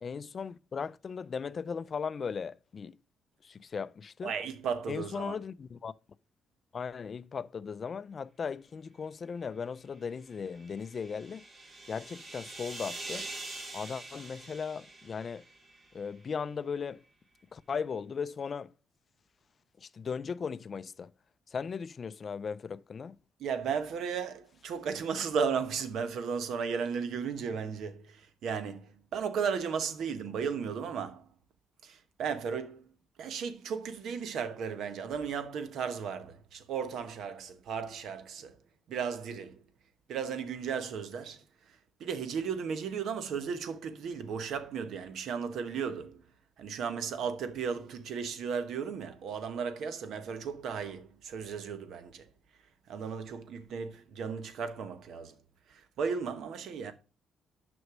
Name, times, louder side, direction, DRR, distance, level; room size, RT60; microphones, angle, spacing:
voice 1, 0.0-3.0 3.4-4.3 4.9-5.9 6.7-11.4 11.9-13.3 13.7-15.4 15.9-17.0 17.5-18.7 19.8-21.1 21.5-23.2, left 6 dB, 45° left, 0.4 m, -37 dB
voice 2, 4.2-5.4 23.4-31.3 31.8-32.9 33.2-38.6 38.9-39.6 40.1-41.4 42.0-46.2 46.6-52.3 52.9-55.4 55.7-56.9, right 6 dB, 75° right, 1.0 m, -35 dB
sound 1, 10.3-15.9, right 2 dB, 45° right, 2.1 m, -45 dB
6.4 x 5.3 x 6.0 m
cardioid pair, 90°, 0 cm